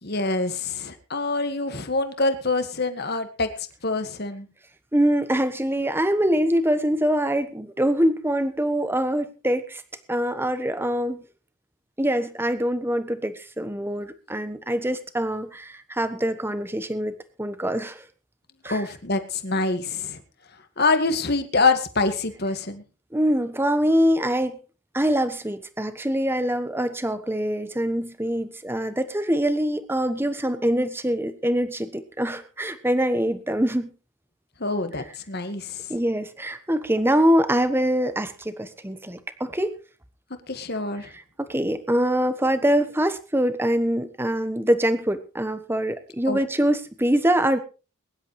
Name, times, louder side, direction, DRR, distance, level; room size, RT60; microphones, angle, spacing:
voice 1, 0.0-3.5 3.8-4.5 18.7-20.2 20.8-22.8 34.6-35.9 40.5-41.1 46.3-46.4, left 3 dB, 50° left, 8 dB, 1.8 m, -25 dB
voice 2, 4.9-9.8 10.1-11.2 12.0-18.1 18.6-18.8 23.1-24.6 24.9-33.9 35.9-39.8 41.1-47.6, equal, 10° right, 11 dB, 1.1 m, -24 dB
22.5 x 11.0 x 3.2 m, 0.34 s
head